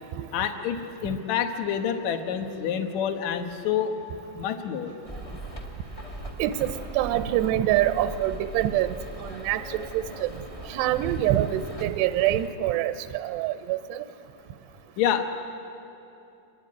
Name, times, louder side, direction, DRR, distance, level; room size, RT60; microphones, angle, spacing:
voice 1, 0.3-3.9 4.3-4.9 15.0-15.2, left 8 dB, 70° left, 5 dB, 1.7 m, -27 dB
sound 1, 5.0-12.5, right 1 dB, 35° left, 0.5 m, -40 dB
voice 2, 6.4-9.0 9.2-10.3 10.7-14.1, right 13 dB, 80° right, 10 dB, 2.5 m, -25 dB
25.0 x 23.0 x 9.8 m, 2.9 s
omnidirectional pair, 5.3 m